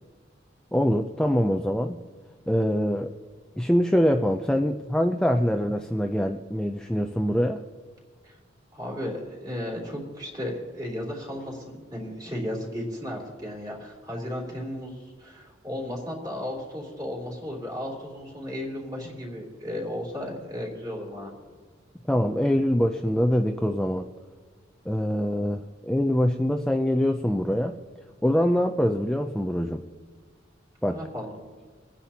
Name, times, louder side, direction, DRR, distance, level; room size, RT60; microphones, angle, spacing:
voice 1, 0.7-2.0 2.5-3.1 3.6-7.6 22.1-24.1 24.9-27.7 28.2-29.8 30.8-31.0, equal, 5° left, 4 dB, 0.4 m, -24 dB
voice 2, 8.7-21.3 30.8-31.4, left 1 dB, 20° right, -2 dB, 3.1 m, -34 dB
26.0 x 10.0 x 2.8 m, 1.5 s
head